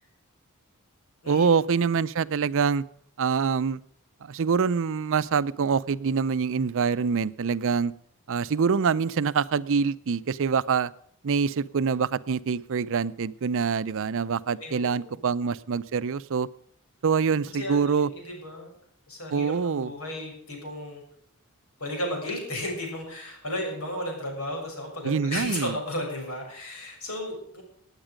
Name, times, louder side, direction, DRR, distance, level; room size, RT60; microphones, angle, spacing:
voice 1, 1.3-2.8 3.2-3.8 4.2-7.9 8.3-10.9 11.2-16.5 17.0-18.1 19.3-19.9 25.0-25.8, right 5 dB, 60° right, 17 dB, 0.5 m, -25 dB
voice 2, 14.6-15.2 17.5-18.7 19.1-21.0 21.8-27.6, left 1 dB, 70° left, 1 dB, 6.6 m, -34 dB
18.0 x 9.0 x 5.1 m, 0.67 s
head